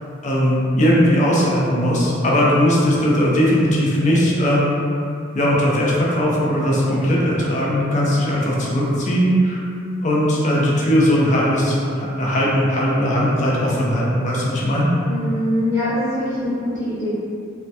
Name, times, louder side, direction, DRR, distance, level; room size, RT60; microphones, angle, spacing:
voice 1, 0.2-4.8 5.3-9.6 10.0-14.9, equal, 35° left, -5 dB, 0.4 m, -18 dB
voice 2, 15.0-17.1, left 1 dB, 15° right, -14 dB, 0.7 m, -23 dB
2.2 x 2.1 x 2.7 m, 2.5 s
head